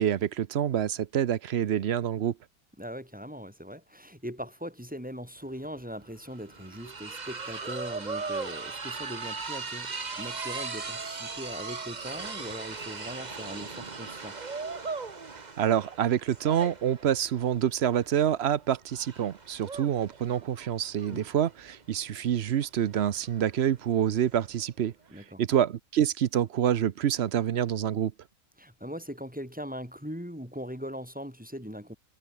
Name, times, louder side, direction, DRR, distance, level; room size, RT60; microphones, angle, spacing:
voice 1, 0.0-2.4 15.6-24.9 25.4-28.1, right 10 dB, 55° right, 0.8 m, -27 dB
voice 2, 2.8-9.9 10.2-14.4 21.1-21.3 25.1-25.4 28.6-32.0, equal, 5° right, 7.3 m, -40 dB
sound 1, 5.4-5.5 5.8-24.6, right 4 dB, 30° right, 1.4 m, -39 dB
omnidirectional pair, 1.6 m